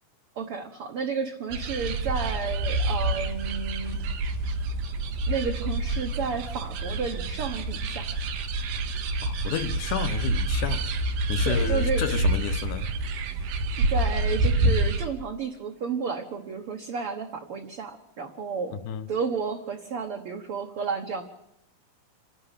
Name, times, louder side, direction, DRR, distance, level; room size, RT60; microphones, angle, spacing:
voice 1, 0.3-4.2 5.3-8.1 11.4-12.1 13.8-18.7 19.1-21.2, right 5 dB, 60° right, 1.6 m, -32 dB
sound 1, 1.5-15.1, right 2 dB, 80° right, 3.0 m, -27 dB
voice 2, 9.2-10.9 11.3-12.9 18.9-19.1, left 9 dB, 70° left, 2.3 m, -31 dB
27.0 x 11.5 x 8.3 m
omnidirectional pair, 4.1 m